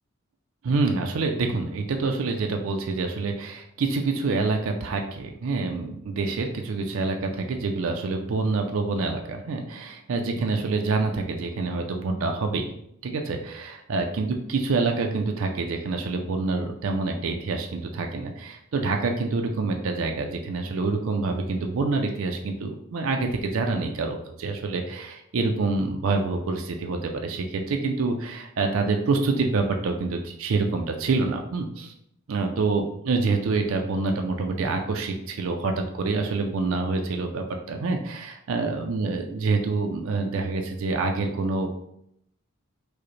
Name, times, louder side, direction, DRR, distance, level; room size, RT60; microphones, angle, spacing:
voice 1, 0.6-12.7 13.0-31.9 32.3-41.8, right 3 dB, 65° right, 4 dB, 0.4 m, -27 dB
4.8 x 2.1 x 3.1 m, 0.76 s
head